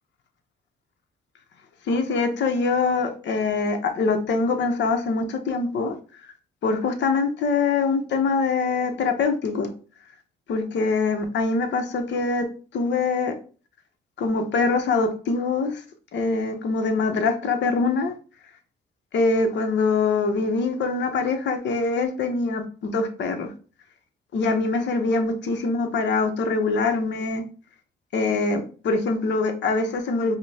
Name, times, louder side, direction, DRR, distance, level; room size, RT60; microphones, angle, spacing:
voice 1, 1.9-6.0 6.2-6.3 6.6-9.7 10.5-12.5 12.7-13.3 14.2-15.8 16.1-18.1 19.1-23.5 24.3-27.4 28.1-30.4, left 4 dB, 65° left, 6 dB, 0.8 m, -24 dB
5.0 x 2.1 x 2.8 m, 0.37 s
cardioid pair, 90°, 20 cm